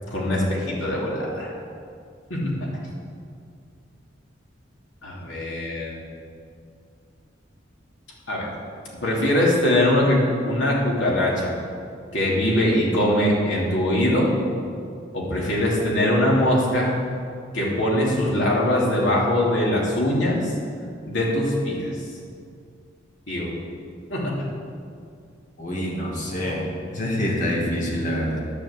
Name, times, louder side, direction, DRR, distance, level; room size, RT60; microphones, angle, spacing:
voice 1, 0.1-1.5 2.3-2.7 5.0-6.0 8.3-8.5 9.0-11.6 12.1-14.3 15.1-17.0 17.5-20.4 21.1-21.9 23.3-23.5 24.1-24.5, left 1 dB, 75° left, -4 dB, 3.0 m, -22 dB
voice 2, 25.6-28.4, equal, 40° left, -3 dB, 2.3 m, -26 dB
10.5 x 7.0 x 7.8 m, 2.3 s
head